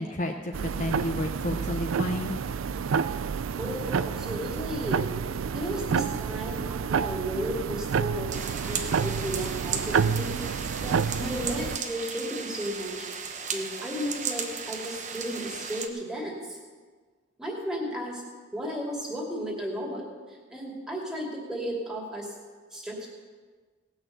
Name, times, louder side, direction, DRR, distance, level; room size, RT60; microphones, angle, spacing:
voice 1, 0.0-2.3, left 1 dB, 40° left, 2 dB, 0.8 m, -31 dB
sound 1, 0.5-11.8, right 6 dB, 85° right, 0.4 m, -29 dB
voice 2, 3.6-5.0 5.5-8.3 8.6-13.1 13.5-16.6 17.4-18.2 18.5-22.3 22.7-23.1, equal, 5° right, -2 dB, 2.5 m, -34 dB
sound 2, 8.3-15.9, right 6 dB, 35° right, 1.0 m, -35 dB
18.0 x 6.4 x 7.8 m, 1.5 s
head